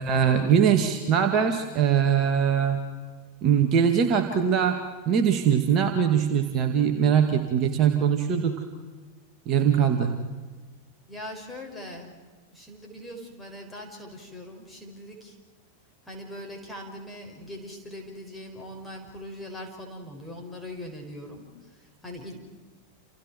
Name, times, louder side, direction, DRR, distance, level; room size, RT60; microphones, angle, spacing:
voice 1, 0.0-2.8 3.4-4.8 5.1-8.6 9.5-10.1, right 8 dB, 35° right, 4 dB, 2.1 m, -22 dB
voice 2, 11.1-12.2 12.5-15.4 16.1-22.3, left 1 dB, 5° left, 0 dB, 6.1 m, -41 dB
29.5 x 29.0 x 4.6 m, 1.4 s
figure-of-eight pair, 90°, 0 cm